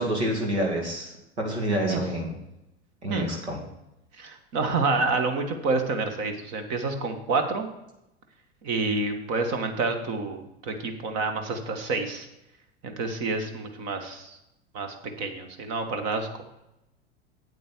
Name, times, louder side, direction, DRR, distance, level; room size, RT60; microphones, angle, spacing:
voice 1, 0.0-2.4 3.0-3.6, equal, 85° right, 1 dB, 2.7 m, -28 dB
voice 2, 4.2-7.7 8.6-12.3 12.8-14.4 14.7-16.4, right 3 dB, 50° right, 6 dB, 1.8 m, -28 dB
8.6 x 8.4 x 4.6 m, 0.88 s
hypercardioid pair, 90°, 33 cm